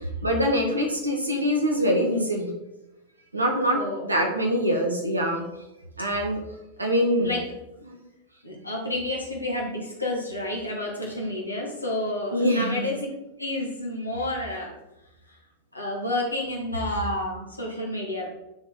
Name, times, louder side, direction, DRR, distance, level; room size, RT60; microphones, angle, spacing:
voice 1, 0.2-2.5 3.3-5.4 6.0-6.4 6.8-7.3 7.9-8.0 12.3-12.9, equal, 80° right, 2 dB, 1.4 m, -24 dB
voice 2, 8.4-12.9 13.4-14.7 15.7-18.3, left 1 dB, 85° left, -2 dB, 1.6 m, -30 dB
9.5 x 4.2 x 3.8 m, 0.94 s
figure-of-eight pair, 90°, 0 cm